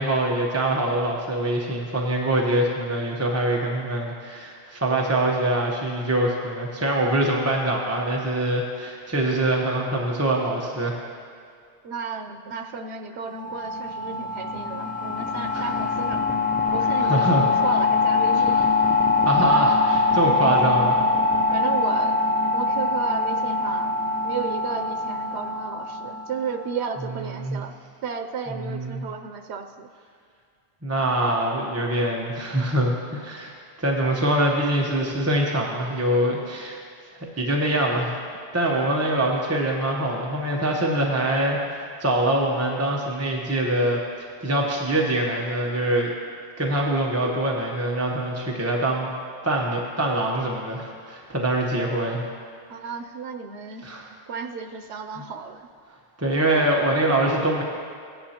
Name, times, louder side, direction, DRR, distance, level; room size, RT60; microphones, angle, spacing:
voice 1, 0.0-11.0 15.5-15.6 17.0-17.5 18.3-18.5 19.2-21.0 27.4-27.6 28.6-29.0 30.8-36.8 37.4-38.2 38.5-46.1 46.6-49.1 49.4-52.3 53.8-54.0 56.2-57.6, right 1 dB, 15° right, -2 dB, 0.8 m, -24 dB
voice 2, 11.8-16.3 16.7-18.8 21.5-22.2 22.5-23.9 24.2-27.7 28.0-29.9 52.7-53.9 54.3-55.7, right 5 dB, 85° right, 5 dB, 0.9 m, -33 dB
sound 1, 13.4-26.9, left 3 dB, 15° left, 0.3 m, -23 dB
17.0 x 10.0 x 2.9 m, 2.2 s
omnidirectional pair, 1.1 m